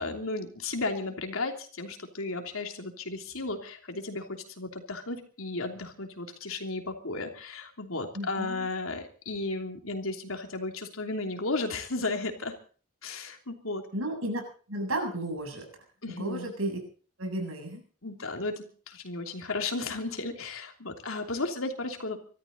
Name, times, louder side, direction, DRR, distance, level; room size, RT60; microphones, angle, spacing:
voice 1, 0.0-12.6 13.0-13.8 16.0-16.5 18.0-22.2, left 3 dB, 80° left, 4 dB, 3.1 m, -34 dB
voice 2, 8.1-8.7 13.9-14.4 14.7-15.6 16.1-16.8 17.2-17.8, right 1 dB, 80° right, 3 dB, 7.8 m, -33 dB
24.5 x 13.5 x 4.0 m, 0.41 s
head